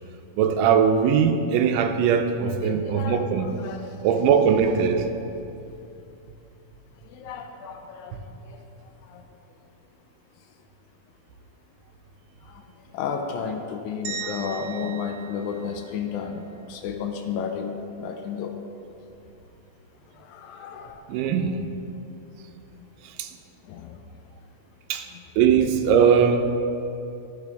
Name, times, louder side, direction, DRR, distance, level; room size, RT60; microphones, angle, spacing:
voice 1, 0.4-3.5 4.0-5.1 21.1-21.6 23.2-23.3 24.9-25.1 25.4-26.5, right 7 dB, 85° right, 6 dB, 2.2 m, -20 dB
voice 2, 2.6-4.0 7.1-8.2 8.5-8.6 9.1-9.2 12.5-12.6 12.9-18.5 20.2-21.2 23.7-24.0 25.1-25.2, left 6 dB, 80° left, 4 dB, 1.8 m, -33 dB
sound 1, 14.0-16.3, right 7 dB, 70° right, 2.2 m, -38 dB
12.5 x 5.9 x 3.4 m, 2.7 s
omnidirectional pair, 3.8 m